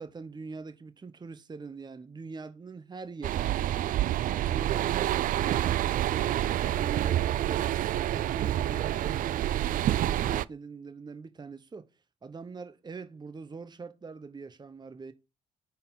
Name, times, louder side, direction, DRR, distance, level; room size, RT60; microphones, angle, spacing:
voice 1, 0.0-3.9 4.4-7.7 8.1-11.8 12.2-15.1, right 4 dB, 25° right, 0.8 m, -42 dB
sound 1, 3.2-10.4, right 13 dB, 55° right, 0.4 m, -28 dB
9.4 x 4.2 x 3.9 m
hypercardioid pair, 50°, 17 cm